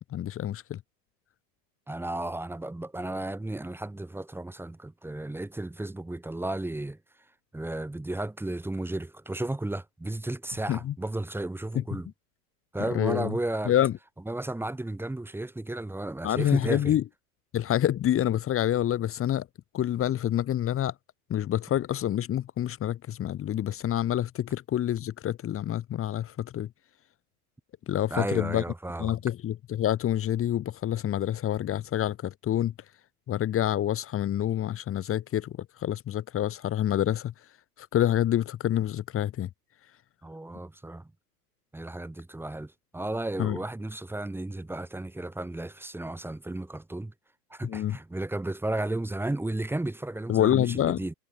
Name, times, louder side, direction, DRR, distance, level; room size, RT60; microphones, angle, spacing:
voice 1, 0.1-0.8 10.7-10.9 11.7-12.0 12.9-13.4 13.7-13.9 16.2-17.0 17.5-19.5 19.7-20.9 21.3-26.7 27.9-28.6 29.0-32.7 33.3-37.3 37.8-39.5 43.4-43.6 47.6-48.0 50.3-51.0, left 11 dB, 30° left, 4.3 m, -27 dB
voice 2, 1.9-7.0 7.5-12.1 12.7-13.7 14.3-16.9 28.1-29.2 40.2-41.1 41.7-47.1 47.5-51.1, right 2 dB, 5° right, 5.4 m, -33 dB
hypercardioid pair, 120°, 47 cm